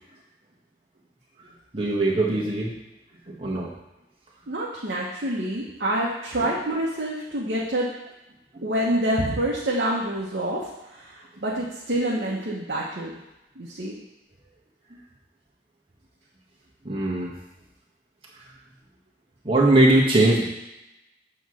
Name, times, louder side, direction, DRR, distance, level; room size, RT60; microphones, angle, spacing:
voice 1, 1.7-2.7 3.3-3.7 6.4-6.5 8.5-8.6 16.8-17.3 19.4-20.4, right 2 dB, 30° right, -4 dB, 1.4 m, -20 dB
voice 2, 4.5-7.9 8.6-13.1 13.6-13.9, right 1 dB, 60° right, -5 dB, 1.0 m, -27 dB
7.9 x 3.1 x 6.2 m, 0.95 s
head